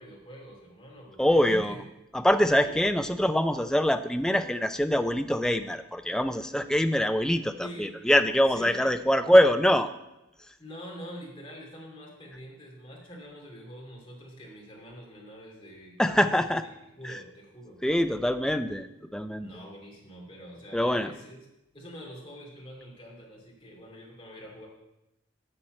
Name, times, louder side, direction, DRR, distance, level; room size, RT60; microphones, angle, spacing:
voice 1, 0.0-1.8 2.4-3.1 7.6-7.9 8.5-9.0 10.6-16.7 17.0-17.8 19.4-21.4 21.7-24.7, equal, 25° left, -3 dB, 2.7 m, -45 dB
voice 2, 1.2-1.8 2.1-9.9 16.0-16.6 17.0-17.1 17.8-18.9 19.1-19.5 20.7-21.1, equal, 5° left, 9 dB, 0.3 m, -24 dB
9.8 x 4.4 x 7.6 m, 0.92 s
head